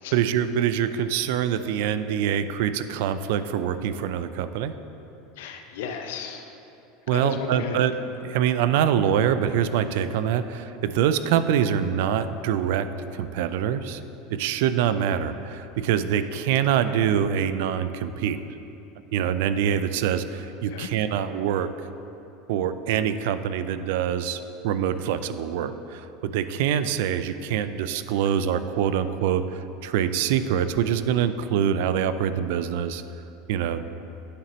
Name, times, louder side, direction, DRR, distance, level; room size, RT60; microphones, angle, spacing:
voice 1, 0.1-4.7 7.1-7.9 8.2-14.0 14.3-18.4 19.1-21.7 22.5-33.0 33.5-33.8, right 9 dB, 70° right, 12 dB, 0.3 m, -25 dB
voice 2, 5.4-6.5 7.1-7.9 20.7-20.9, left 6 dB, 85° left, 6 dB, 0.6 m, -34 dB
9.6 x 5.9 x 3.1 m, 2.9 s
supercardioid pair, 155°, 0 cm